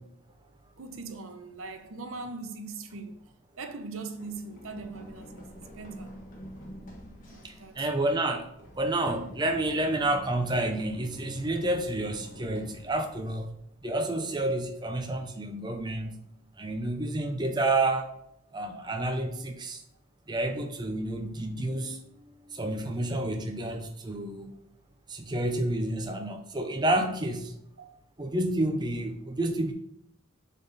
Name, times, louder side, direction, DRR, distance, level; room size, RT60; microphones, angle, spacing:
voice 1, 0.8-3.2 3.6-6.1 7.3-7.9 16.0-16.1 18.7-18.9 27.8-27.9, right 3 dB, 75° right, 0.8 m, -41 dB
Run, 4.1-13.9, equal, 40° left, 1.3 m, -48 dB
voice 2, 7.4-8.5 8.8-13.5 13.8-16.2 16.6-18.1 18.5-19.8 20.3-22.0 22.5-24.5 25.1-27.5 28.2-29.7, right 2 dB, 20° right, 0.6 m, -29 dB
7.4 x 3.7 x 4.0 m
head